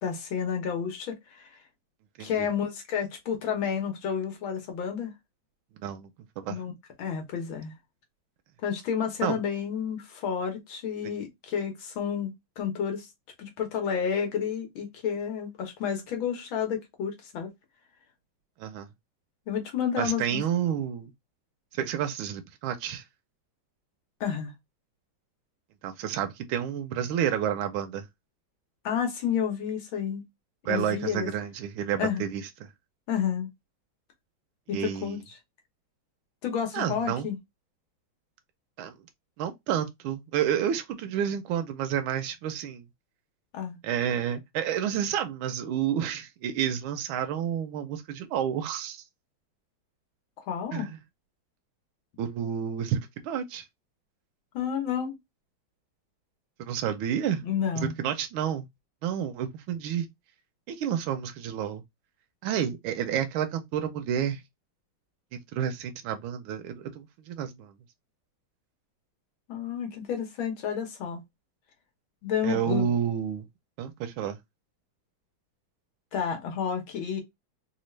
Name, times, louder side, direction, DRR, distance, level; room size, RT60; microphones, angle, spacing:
voice 1, 0.0-1.5 2.2-5.1 6.5-6.7 7.0-7.7 8.6-13.1 13.4-17.5 19.5-20.4 24.2-24.5 28.8-30.2 30.7-31.3 32.0-32.3 33.1-33.5 34.7-35.3 36.4-37.4 43.5-43.8 50.4-50.9 54.5-55.2 57.4-57.9 69.5-71.2 72.2-72.9 76.1-77.2, left 7 dB, 75° left, 1.9 m, -30 dB
voice 2, 20.0-21.1 21.7-23.0 25.8-28.0 30.6-32.4 34.7-35.2 36.7-37.3 38.8-38.9 39.4-42.8 43.8-49.0 50.7-51.0 52.2-53.6 56.6-57.4 57.7-58.6 59.0-60.1 60.7-61.8 62.4-64.4 65.5-67.7 72.4-73.4 73.8-74.4, right 9 dB, 80° right, 1.4 m, -30 dB
4.1 x 2.4 x 3.1 m
omnidirectional pair, 2.2 m